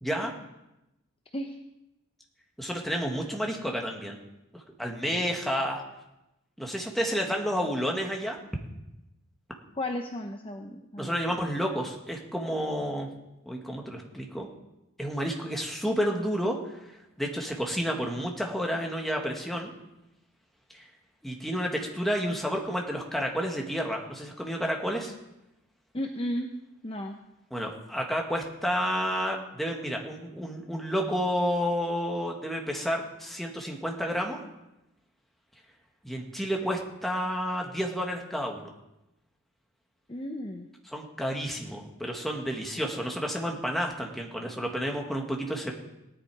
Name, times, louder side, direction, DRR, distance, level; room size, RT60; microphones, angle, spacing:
voice 1, 0.0-0.3 2.6-4.2 4.5-5.8 6.6-8.4 11.0-13.1 13.4-14.5 15.0-16.8 17.2-19.7 20.7-20.9 21.2-25.1 27.5-34.4 36.0-38.7 40.9-45.7, equal, ahead, 1 dB, 1.7 m, -30 dB
voice 2, 9.8-11.4 25.9-26.5 26.8-27.2 40.1-40.7, left 1 dB, 25° left, 4 dB, 0.7 m, -34 dB
18.0 x 10.5 x 4.8 m, 0.93 s
head